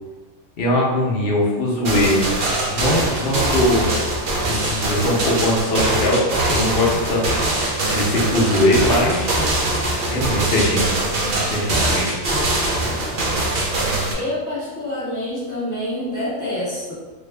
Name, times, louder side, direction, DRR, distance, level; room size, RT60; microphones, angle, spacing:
voice 1, 0.6-2.3 2.7-4.0 4.5-7.2 7.9-9.4 10.1-10.8 11.3-12.3, left 1 dB, 50° left, -3 dB, 0.8 m, -21 dB
sound 1, 1.8-14.1, right 1 dB, 60° right, 0.5 m, -22 dB
voice 2, 14.1-16.9, left 1 dB, 15° left, -9 dB, 1.1 m, -27 dB
3.4 x 2.3 x 3.2 m, 1.3 s
omnidirectional pair, 1.5 m